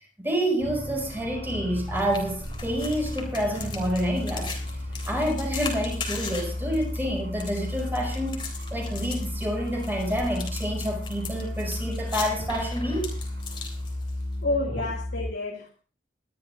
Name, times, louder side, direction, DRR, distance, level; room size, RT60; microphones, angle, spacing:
voice 1, 0.2-4.5 5.1-8.4 8.7-13.1, equal, 10° right, 5.5 m, -28 dB
sound 1, 0.6-15.3, left 1 dB, 75° right, 5.7 m, -34 dB
sound 2, 1.9-14.4, left 4 dB, 25° left, 3.8 m, -39 dB
voice 2, 14.4-15.8, left 2 dB, 80° left, 2.2 m, -29 dB
22.0 x 12.5 x 2.5 m
head